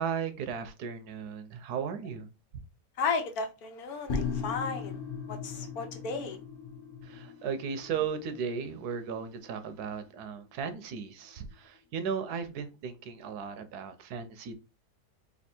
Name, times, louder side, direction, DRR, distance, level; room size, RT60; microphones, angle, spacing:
voice 1, 0.0-2.3 7.0-14.5, right 6 dB, 75° right, 1.2 m, -36 dB
voice 2, 3.0-5.0 5.3-6.4, left 4 dB, 70° left, 1.3 m, -34 dB
sound 1, 4.1-11.3 11.5-11.6, left 5 dB, 40° left, 1.0 m, -39 dB
3.4 x 2.8 x 4.2 m
omnidirectional pair, 1.7 m